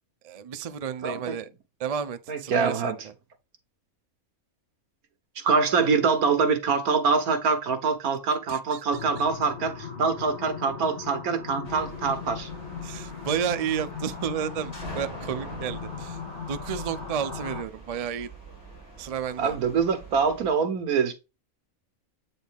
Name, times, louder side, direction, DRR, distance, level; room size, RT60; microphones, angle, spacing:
voice 1, 0.2-1.5 1.8-3.1 8.5-9.0 12.8-16.2 16.5-18.3 19.0-19.6, right 8 dB, 60° right, 0.3 m, -32 dB
voice 2, 1.0-1.4 2.3-2.9 5.4-12.5 19.4-21.1, right 5 dB, 80° right, 1.6 m, -24 dB
sound 1, 8.9-17.6, left 6 dB, 50° left, 2.4 m, -38 dB
sound 2, 11.6-20.5, right 3 dB, 20° left, 4.2 m, -44 dB
8.2 x 4.0 x 3.5 m
omnidirectional pair, 1.5 m